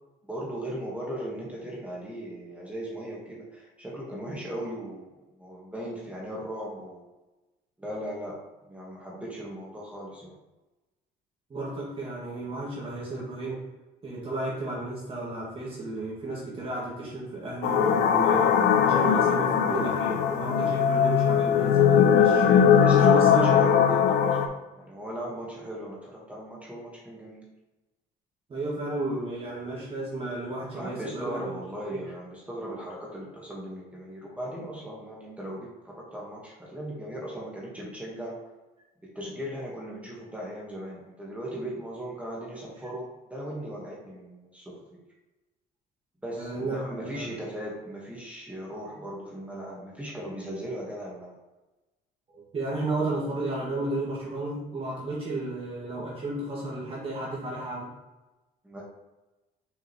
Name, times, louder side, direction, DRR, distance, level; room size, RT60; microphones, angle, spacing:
voice 1, 0.2-7.1 7.8-10.4 22.8-27.5 30.7-38.4 39.0-45.0 46.2-51.4 58.6-58.8, equal, 10° right, -4 dB, 1.5 m, -38 dB
voice 2, 11.5-13.7 14.0-18.5 18.8-23.5 28.5-31.6 31.9-32.0 46.4-47.3 52.3-57.9, right 2 dB, 35° right, -6 dB, 1.9 m, -33 dB
sound 1, 17.6-24.5, left 8 dB, 75° left, 0.6 m, -20 dB
6.2 x 5.0 x 3.1 m, 1.1 s
cardioid pair, 110°, 17 cm